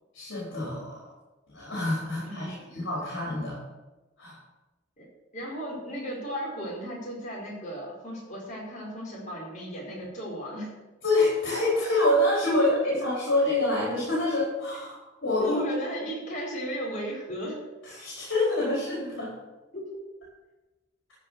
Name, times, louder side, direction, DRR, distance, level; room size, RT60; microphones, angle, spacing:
voice 1, 0.1-0.9 1.5-3.6 4.2-4.3 11.0-12.7 13.0-14.9 15.2-15.6 17.8-19.3, left 2 dB, 75° left, -7 dB, 4.8 m, -26 dB
voice 2, 2.2-2.7 5.0-5.1 5.3-10.7 12.5-12.8 15.4-17.6 19.7-20.0, equal, 40° left, -3 dB, 4.7 m, -35 dB
14.0 x 5.7 x 7.8 m, 1.1 s
head